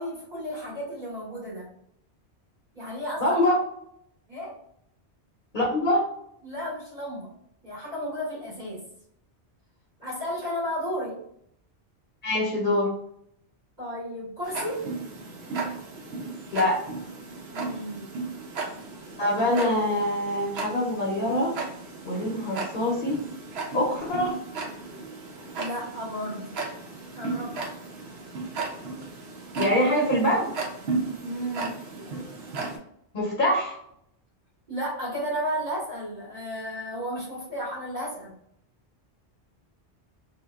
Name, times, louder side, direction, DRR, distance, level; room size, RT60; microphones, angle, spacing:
voice 1, 0.0-1.7 2.7-3.4 4.3-4.6 6.4-7.3 7.6-8.8 10.0-11.2 13.8-14.9 17.5-18.2 25.6-26.6 27.1-27.8 31.2-31.7 34.7-38.3, equal, 45° right, -10 dB, 1.4 m, -33 dB
voice 2, 3.2-3.5 5.5-6.0 12.2-12.9 16.5-16.8 19.2-21.5 22.0-23.2 23.7-24.4 29.6-30.5 33.1-33.8, left 1 dB, 55° left, -4 dB, 0.8 m, -24 dB
Tick-tock, 14.4-32.8, right 3 dB, 70° right, 0.9 m, -35 dB
2.8 x 2.1 x 2.3 m, 0.72 s
omnidirectional pair, 1.1 m